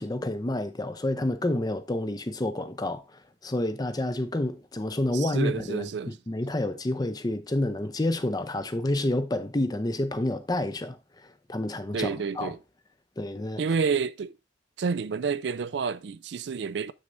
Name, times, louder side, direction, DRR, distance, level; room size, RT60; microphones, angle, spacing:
voice 1, 0.0-3.0 3.4-11.0 11.2-12.5 13.2-13.6, left 1 dB, 20° left, 0.6 m, -29 dB
voice 2, 5.1-6.2 11.9-12.6 13.6-14.3 14.8-16.9, right 5 dB, 70° right, 0.4 m, -29 dB
7.4 x 6.4 x 2.6 m
head